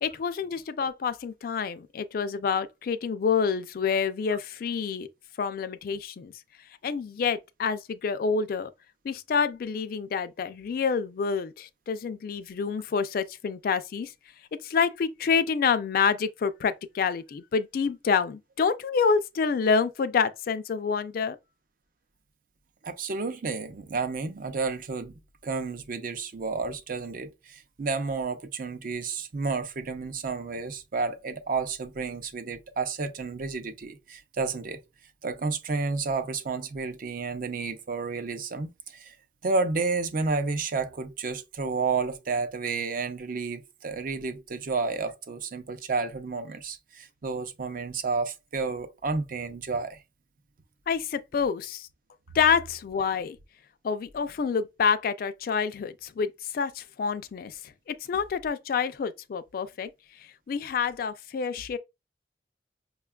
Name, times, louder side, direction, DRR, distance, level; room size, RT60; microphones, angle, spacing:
voice 1, 0.0-5.1 5.4-6.3 6.8-8.7 9.0-14.1 14.6-21.4 50.9-51.9 52.3-53.4 53.8-59.9 60.2-61.8, left 6 dB, 55° left, 0.3 m, -27 dB
voice 2, 22.8-25.1 25.4-34.8 35.2-39.1 39.4-50.0, right 4 dB, 50° right, 0.5 m, -31 dB
5.5 x 2.3 x 2.2 m
head